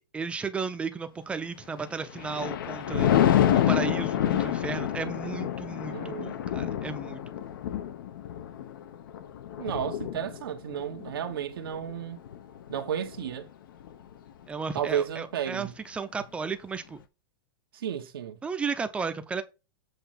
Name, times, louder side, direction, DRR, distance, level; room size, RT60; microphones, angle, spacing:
voice 1, 0.1-3.4 3.7-7.2 14.5-17.0 18.4-19.4, right 5 dB, 10° right, 0.7 m, -34 dB
Thunder, 1.8-13.3 13.8-14.1, left 11 dB, 70° left, 1.0 m, -28 dB
voice 2, 5.9-6.4 9.6-12.2 12.7-13.5 14.7-15.7 17.7-18.4, right 9 dB, 85° right, 1.3 m, -32 dB
8.0 x 3.2 x 5.8 m
supercardioid pair, 150°, 12 cm